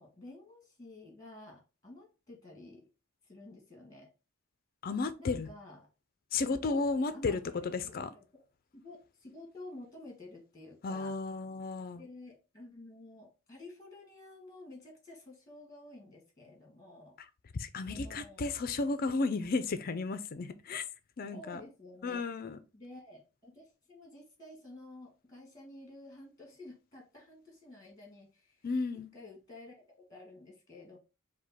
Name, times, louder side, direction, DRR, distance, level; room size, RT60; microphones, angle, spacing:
voice 1, 0.0-2.9 3.2-4.1 5.2-5.9 6.7-6.9 7.1-8.4 8.7-11.2 11.9-17.2 17.9-18.5 21.3-22.5 22.7-28.7 29.1-31.0, left 2 dB, 15° left, 1.6 m, -51 dB
voice 2, 4.8-5.5 6.3-8.1 10.8-12.0 17.5-20.8 21.2-21.6 22.0-22.6 28.6-29.1, left 3 dB, 45° left, 0.4 m, -33 dB
5.1 x 2.2 x 4.1 m
head